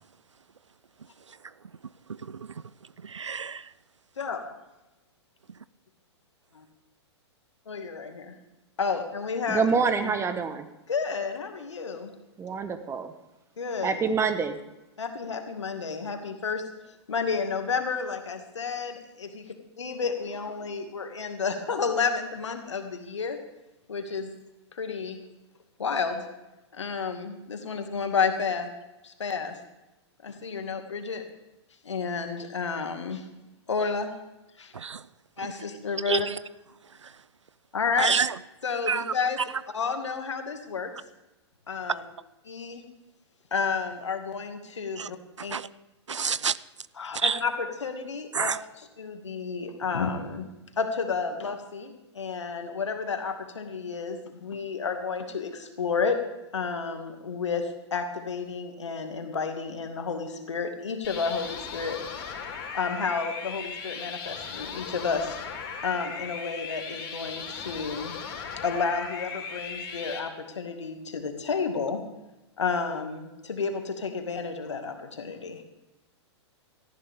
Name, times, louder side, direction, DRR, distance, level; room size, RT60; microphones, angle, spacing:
voice 1, 2.1-2.6 3.0-3.7 34.7-35.1 36.1-36.4 37.0-37.1 38.0-38.4 38.9-39.4 45.0-45.1 45.4-45.7 46.1-46.6 47.1-47.4 48.3-48.6, right 6 dB, 90° right, 0.5 m, -29 dB
voice 2, 7.7-8.3 8.8-9.7 10.0-10.1 10.9-12.1 13.6-14.2 15.0-16.6 17.1-19.4 19.8-23.4 23.9-24.3 24.7-25.2 25.8-26.2 26.7-28.7 29.0-29.6 30.2-31.2 31.8-33.2 33.7-34.1 34.6-34.7 35.4-36.3 37.7-38.2 38.6-39.4 39.7-40.9 41.7-42.0 42.5-42.8 43.5-45.6 47.0-48.5 49.0-50.5 50.8-56.2 56.5-62.0 62.7-65.4 65.8-68.1 68.6-72.0 72.6-75.6, left 5 dB, 80° left, 2.2 m, -31 dB
voice 3, 9.5-10.7 12.4-13.1 13.8-14.6, right 5 dB, 20° right, 1.3 m, -26 dB
sound 1, 61.0-70.2, left 6 dB, 50° left, 3.8 m, -37 dB
18.5 x 14.0 x 3.6 m
hypercardioid pair, 110°, 15 cm